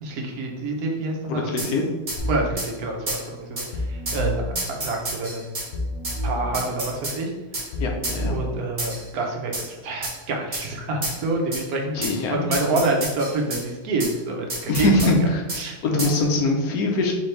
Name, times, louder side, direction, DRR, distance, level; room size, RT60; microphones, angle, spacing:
voice 1, 0.0-1.6 2.3-5.7 6.2-7.3 8.3-12.0 12.3-15.1 15.5-16.1, right 2 dB, 75° right, 1 dB, 1.2 m, -27 dB
voice 2, 1.3-1.8 7.8-8.3 12.0-12.8 14.7-15.2 15.8-17.1, left 2 dB, 75° left, 1 dB, 1.2 m, -22 dB
sound 1, 1.6-1.7 2.1-2.2 2.6-2.7 3.1-3.2 3.6-3.7 4.1-4.2 4.6-5.7 6.0-6.2 6.5-7.2 7.5-7.7 8.0-8.2 8.8-9.1 9.5-9.7 10.0-10.2 10.5-10.7 11.0-11.2 11.5-11.6 12.0-12.2 12.5-13.6 14.0-14.1 14.5-15.1 15.5-15.6 16.0-16.2, right 2 dB, 35° right, 1.5 m, -30 dB
sound 2, 2.2-2.5 3.7-4.5 5.7-6.5 7.7-8.5, left 1 dB, 55° left, 0.9 m, -28 dB
4.4 x 3.4 x 3.2 m, 1.2 s
omnidirectional pair, 1.6 m